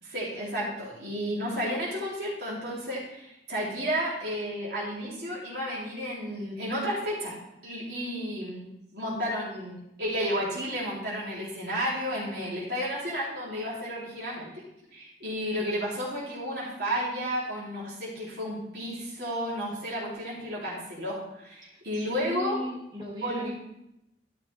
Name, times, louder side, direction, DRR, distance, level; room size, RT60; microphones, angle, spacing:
voice 1, 0.0-7.4 7.6-8.7 8.9-14.5 14.9-22.6 23.2-23.5, equal, 65° right, -7 dB, 3.7 m, -32 dB
voice 2, 21.6-23.5, equal, 25° right, -6 dB, 4.0 m, -37 dB
13.0 x 6.0 x 4.7 m, 0.85 s
head